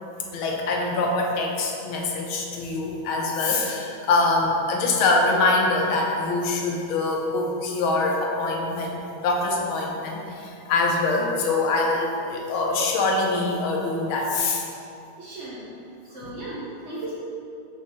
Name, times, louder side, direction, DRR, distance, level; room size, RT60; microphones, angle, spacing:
voice 1, 0.3-14.6 16.2-16.3, left 3 dB, 80° left, 0 dB, 1.6 m, -24 dB
voice 2, 15.2-15.7 16.1-17.1, right 2 dB, 45° right, -9 dB, 0.9 m, -36 dB
5.3 x 3.7 x 5.5 m, 2.7 s
omnidirectional pair, 2.2 m